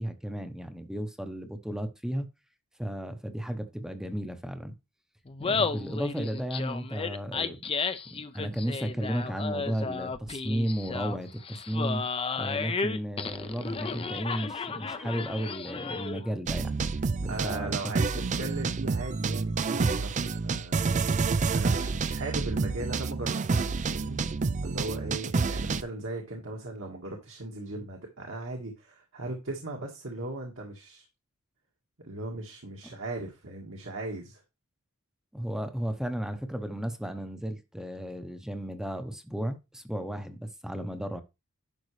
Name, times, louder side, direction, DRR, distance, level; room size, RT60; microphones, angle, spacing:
voice 1, 0.0-2.3 2.8-4.7 5.4-7.7 8.1-12.0 12.3-16.9 17.2-18.3 35.3-41.2, equal, 5° right, 0.8 m, -34 dB
Laughter, 5.3-16.3, left 4 dB, 25° left, 0.5 m, -33 dB
sound 1, 16.5-25.8, right 4 dB, 35° right, 0.4 m, -28 dB
voice 2, 17.3-20.8 21.2-24.2 24.6-31.0 32.0-34.4, right 2 dB, 65° right, 1.6 m, -38 dB
11.0 x 5.9 x 3.2 m
head